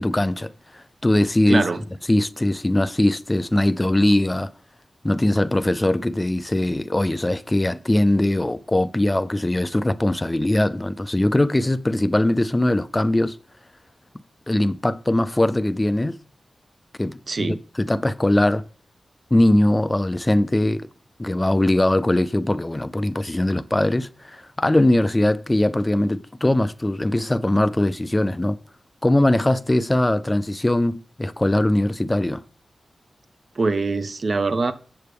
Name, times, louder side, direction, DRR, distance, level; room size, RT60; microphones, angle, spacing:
voice 1, 0.0-1.7 2.1-4.5 5.0-13.4 14.5-16.2 17.0-18.6 19.3-20.9 21.2-28.6 29.0-32.4, left 1 dB, 15° left, 0.3 m, -21 dB
voice 2, 1.5-1.8 17.3-17.6 33.6-34.7, right 3 dB, 45° right, 0.5 m, -23 dB
8.0 x 7.5 x 3.4 m
wide cardioid pair, 120°, 0 cm